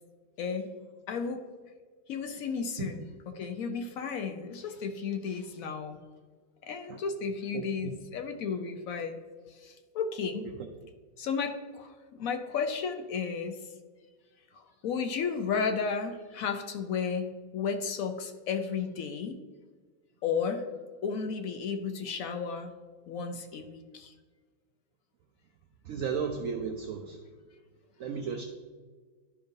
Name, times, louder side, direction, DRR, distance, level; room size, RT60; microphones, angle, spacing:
voice 1, 0.4-0.7 1.1-1.4 2.1-6.0 6.6-9.2 9.6-10.5 11.2-13.6 14.5-19.4 20.2-20.6 21.0-22.7 23.1-24.1, left 6 dB, 70° left, 6 dB, 0.8 m, -33 dB
voice 2, 7.5-7.9 25.9-27.2 28.0-28.4, right 6 dB, 80° right, 5 dB, 0.7 m, -34 dB
11.5 x 5.3 x 2.6 m, 1.5 s
omnidirectional pair, 1.9 m